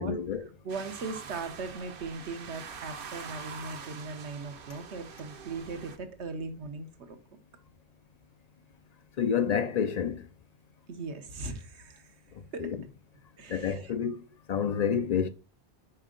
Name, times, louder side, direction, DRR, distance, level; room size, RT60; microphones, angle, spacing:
voice 1, 0.0-0.5 9.2-10.3 12.3-12.8 13.5-14.2 14.5-15.3, left 7 dB, 60° left, 0.4 m, -29 dB
voice 2, 0.6-7.2 10.9-12.1 12.5-12.7 13.4-13.9, right 4 dB, 75° right, 1.3 m, -39 dB
sound 1, 0.7-6.0, right 6 dB, 55° right, 0.9 m, -44 dB
5.6 x 5.1 x 3.7 m
omnidirectional pair, 1.2 m